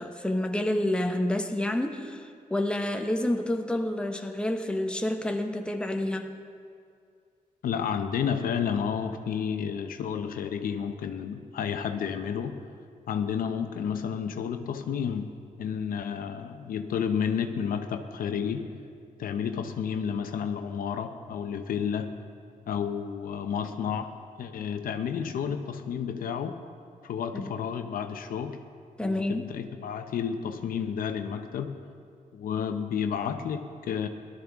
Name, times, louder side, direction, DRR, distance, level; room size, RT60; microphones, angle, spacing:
voice 1, 0.0-6.3 27.3-27.5 29.0-29.5, left 1 dB, 5° left, 4 dB, 0.9 m, -29 dB
voice 2, 7.6-12.6 13.1-18.7 19.2-22.2 22.7-26.6 27.0-28.6 29.0-31.8 32.3-34.1, left 7 dB, 85° left, 7 dB, 0.7 m, -31 dB
18.0 x 12.5 x 3.6 m, 2.3 s
cardioid pair, 95°, 14 cm